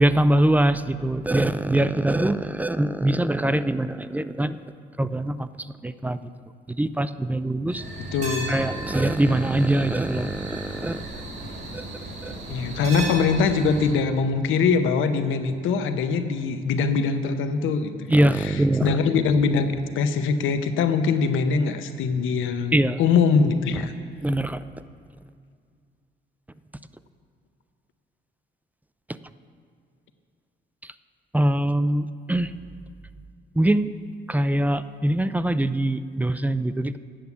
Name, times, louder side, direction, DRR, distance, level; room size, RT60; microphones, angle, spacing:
voice 1, 0.0-4.6 5.0-5.5 5.8-6.2 6.7-7.8 8.5-11.0 11.7-11.8 12.2-12.3 18.1-19.0 22.7-23.0 24.2-24.6 31.3-32.5 33.6-33.9 34.3-37.0, right 1 dB, 10° right, 13 dB, 0.3 m, -23 dB
sound 1, 7.7-13.9, right 2 dB, 70° right, 3.2 m, -35 dB
voice 2, 8.0-8.5 12.5-19.7 19.9-23.9, left 5 dB, 85° left, 8 dB, 0.8 m, -23 dB
8.9 x 8.1 x 7.0 m, 2.2 s
cardioid pair, 90°, 20 cm